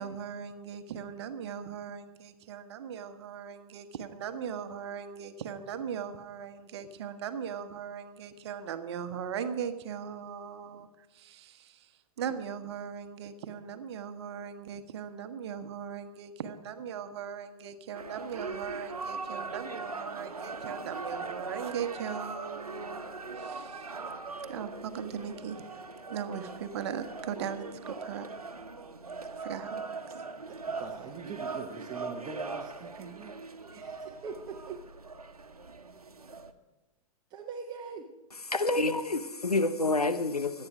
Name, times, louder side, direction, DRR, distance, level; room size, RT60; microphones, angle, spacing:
voice 1, 0.0-11.9 12.2-23.0 23.3-23.9 24.5-25.8 26.1-28.3 29.4-30.2, right 7 dB, 45° right, 1.3 m, -39 dB
sound 1, 17.9-36.5, right 4 dB, 75° right, 1.1 m, -40 dB
voice 2, 30.5-34.8 37.3-38.1, right 5 dB, 20° right, 1.2 m, -43 dB
voice 3, 38.5-40.7, left 2 dB, 85° left, 0.8 m, -28 dB
25.0 x 8.8 x 4.9 m
figure-of-eight pair, 110°, 19 cm